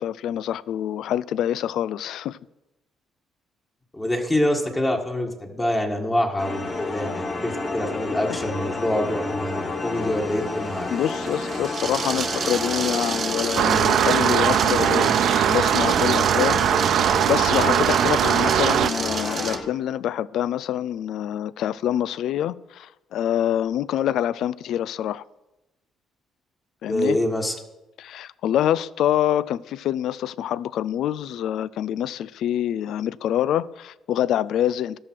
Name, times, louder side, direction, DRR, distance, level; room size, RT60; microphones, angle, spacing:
voice 1, 0.0-2.4 8.3-8.4 10.9-25.2 26.8-27.2 28.0-35.0, left 11 dB, 75° left, 0.4 m, -26 dB
voice 2, 3.9-10.9 26.9-27.5, left 1 dB, 15° left, 1.6 m, -25 dB
sound 1, 6.4-19.6, left 3 dB, 40° left, 2.5 m, -30 dB
sound 2, 9.0-19.6, right 6 dB, 45° right, 1.1 m, -31 dB
sound 3, 13.6-18.9, right 11 dB, 70° right, 0.3 m, -20 dB
13.5 x 12.0 x 4.6 m
cardioid pair, 110°, 0 cm